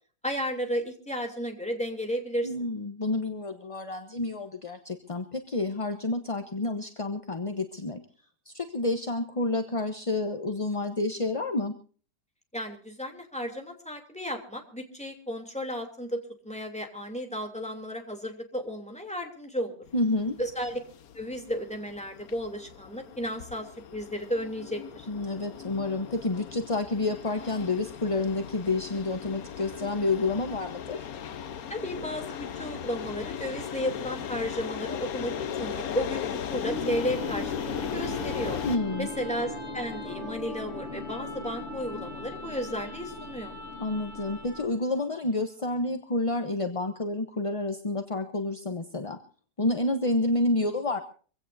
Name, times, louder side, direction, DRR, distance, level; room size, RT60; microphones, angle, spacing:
voice 1, 0.2-2.5 12.5-19.7 20.4-20.8 21.1-25.1 31.7-35.3 35.6-38.6 39.0-43.5, equal, 5° left, 3 dB, 3.0 m, -33 dB
voice 2, 2.4-8.0 8.5-11.8 19.9-20.4 25.1-31.1 38.6-39.1 43.8-49.2 49.6-51.0, left 2 dB, 25° left, 6 dB, 0.9 m, -29 dB
sound 1, 19.8-38.8, left 8 dB, 65° left, 1.3 m, -37 dB
sound 2, 36.7-44.8, left 2 dB, 40° left, 2.5 m, -38 dB
25.0 x 16.5 x 2.7 m, 0.41 s
omnidirectional pair, 1.8 m